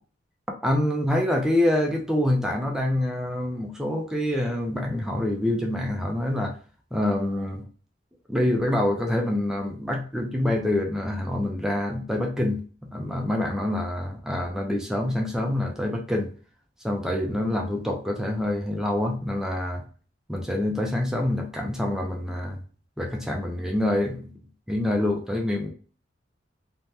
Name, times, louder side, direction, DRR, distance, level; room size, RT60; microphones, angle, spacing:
voice 1, 0.6-6.6 6.9-7.6 8.3-16.3 16.8-19.8 20.3-22.6 23.0-24.3 24.7-25.7, left 1 dB, 5° right, 1 dB, 0.4 m, -26 dB
2.7 x 2.1 x 3.2 m, 0.39 s
head